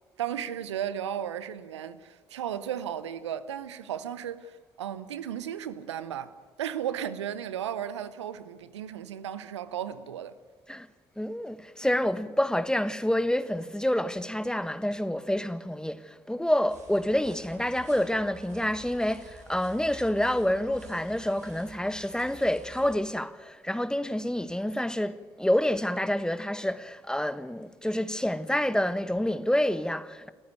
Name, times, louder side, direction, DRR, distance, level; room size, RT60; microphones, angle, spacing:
voice 1, 0.2-10.4, right 9 dB, 85° right, 0.7 m, -35 dB
voice 2, 11.2-30.3, left 1 dB, 5° left, 1.3 m, -28 dB
sound 1, 16.7-23.0, right 3 dB, 55° right, 5.8 m, -50 dB
28.5 x 14.5 x 9.2 m
figure-of-eight pair, 45°, 14 cm